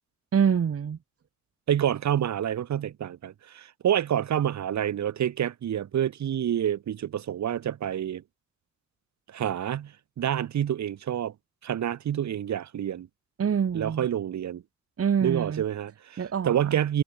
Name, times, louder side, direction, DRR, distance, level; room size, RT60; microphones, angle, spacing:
voice 1, 0.3-1.0 13.4-14.1 15.0-15.6 16.2-16.8, right 7 dB, 50° right, 7.3 m, -26 dB
voice 2, 1.7-8.2 9.3-9.9 10.2-11.3 11.6-13.1 13.7-14.6 15.2-17.0, right 10 dB, 65° right, 7.5 m, -28 dB
cardioid pair, 90°, 30 cm